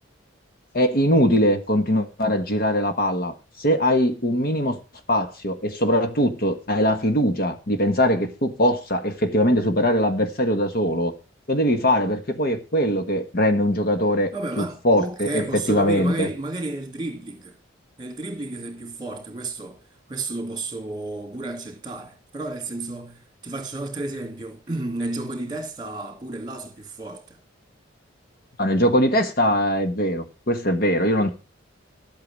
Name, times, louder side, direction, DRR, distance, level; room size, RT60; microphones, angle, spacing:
voice 1, 0.7-4.8 5.1-11.1 11.5-14.3 14.6-16.3 28.6-31.3, equal, 45° left, 1.3 m, -21 dB
voice 2, 14.3-17.6 18.0-19.8 20.1-27.4, right 2 dB, 20° right, 2.5 m, -32 dB
12.5 x 8.5 x 6.2 m
head